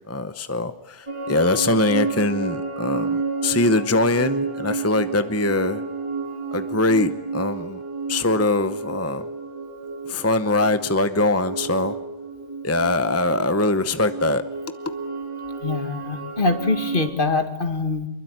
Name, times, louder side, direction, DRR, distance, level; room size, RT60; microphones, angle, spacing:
voice 1, 0.1-5.8 6.5-7.8 8.1-9.3 10.1-12.0 12.6-14.4, left 2 dB, 15° left, 11 dB, 0.9 m, -22 dB
sound 1, 1.1-17.1, right 3 dB, 25° right, 4.1 m, -31 dB
voice 2, 15.6-18.1, left 3 dB, 55° left, 7 dB, 2.4 m, -24 dB
25.0 x 22.5 x 9.3 m, 0.92 s
omnidirectional pair, 1.1 m